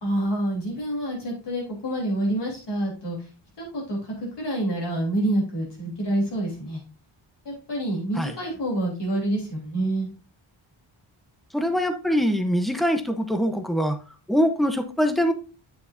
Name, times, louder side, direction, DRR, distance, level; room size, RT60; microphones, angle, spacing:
voice 1, 0.0-3.2 3.6-4.0 4.4-6.8 7.4-10.1, right 1 dB, 60° left, -2 dB, 3.3 m, -27 dB
voice 2, 11.5-14.0 14.3-15.3, equal, ahead, 7 dB, 0.8 m, -23 dB
8.9 x 7.0 x 2.6 m, 0.33 s
wide cardioid pair, 160°, 48 cm